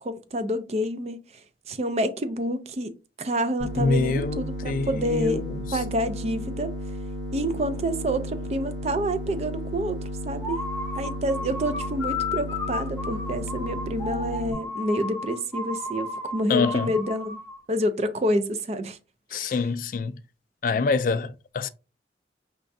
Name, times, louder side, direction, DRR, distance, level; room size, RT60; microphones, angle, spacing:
voice 1, 0.0-1.2 1.7-2.9 3.2-5.5 5.7-6.7 7.3-10.0 10.2-10.6 11.0-17.4 17.7-19.0 19.3-19.5, equal, 35° right, 0.4 m, -28 dB
sound 1, 3.6-14.5, equal, 80° right, 1.0 m, -34 dB
voice 2, 3.8-5.8 16.5-16.9 19.3-20.2 20.6-21.7, left 4 dB, 50° left, 0.3 m, -26 dB
sound 2, 10.4-17.6, left 3 dB, 15° left, 0.8 m, -33 dB
5.0 x 3.3 x 2.6 m
head